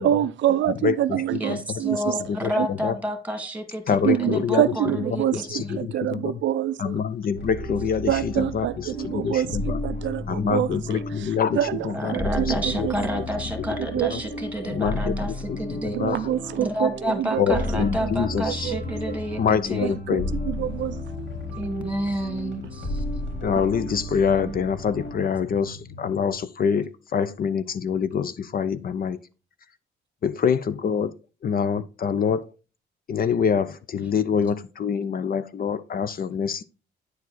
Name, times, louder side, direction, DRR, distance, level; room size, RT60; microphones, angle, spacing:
voice 1, 0.0-2.2 2.6-2.7 4.0-6.9 8.1-9.5 9.8-10.7 11.6-11.8 12.1-13.0 13.8-14.2 15.9-17.6 18.0-18.1 18.5-18.8 19.8-20.2 20.6-21.0, right 12 dB, 70° right, 0.5 m, -26 dB
voice 2, 0.8-1.6 1.9-3.0 3.9-4.6 4.9-6.4 6.8-9.8 10.3-13.1 14.1-14.2 14.6-16.3 17.4-18.7 19.4-20.3 23.4-29.2 30.2-31.1 31.4-32.5 33.1-36.6, left 7 dB, 45° left, 0.5 m, -26 dB
voice 3, 1.4-3.8 4.2-5.8 11.9-16.0 16.6-19.4 19.7-19.9 21.6-23.0, equal, 5° right, 1.9 m, -30 dB
sound 1, 7.3-25.1, left 1 dB, 65° left, 3.9 m, -33 dB
sound 2, 18.3-26.3, left 4 dB, 80° left, 1.3 m, -43 dB
9.3 x 4.7 x 4.1 m
cardioid pair, 90°, 20 cm